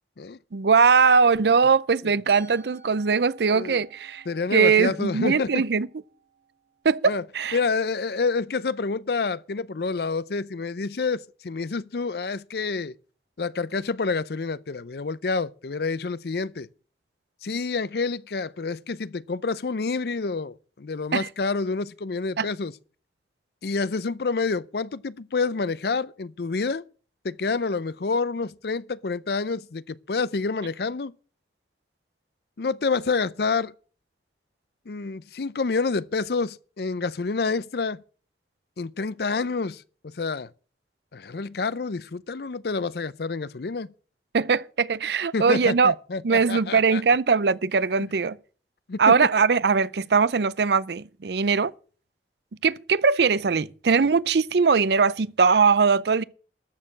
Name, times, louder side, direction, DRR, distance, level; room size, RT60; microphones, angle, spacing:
voice 1, 0.5-4.2 4.5-5.9 6.8-7.6 21.1-21.3 22.4-22.5 44.3-45.9 46.2-48.4 49.0-51.7 52.6-56.2, right 5 dB, 70° right, 0.5 m, -21 dB
Musical instrument, 2.3-8.2, right 6 dB, 50° right, 2.9 m, -54 dB
voice 2, 4.3-5.6 7.0-7.2 7.5-12.9 13.4-16.7 17.4-22.7 23.6-26.8 27.2-31.1 32.6-33.7 34.9-38.0 38.8-40.5 41.1-43.9 45.3-47.0 48.9-49.2, left 4 dB, 60° left, 0.5 m, -28 dB
13.0 x 6.7 x 7.4 m
head